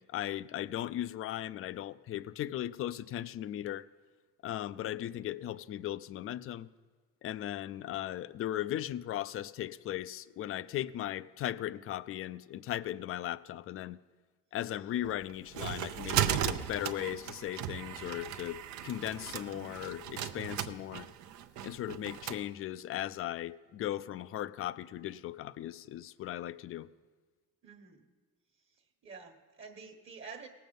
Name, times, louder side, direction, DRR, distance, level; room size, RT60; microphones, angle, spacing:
voice 1, 0.0-3.9 4.4-6.7 7.2-14.0 14.5-21.1 21.6-26.9, left 12 dB, 45° left, 0.4 m, -37 dB
sound 1, 15.0-22.4, right 11 dB, 70° right, 0.7 m, -36 dB
voice 2, 27.6-28.0 29.0-30.5, right 5 dB, 40° right, 1.3 m, -48 dB
18.0 x 7.7 x 5.3 m
cardioid pair, 105°, 30 cm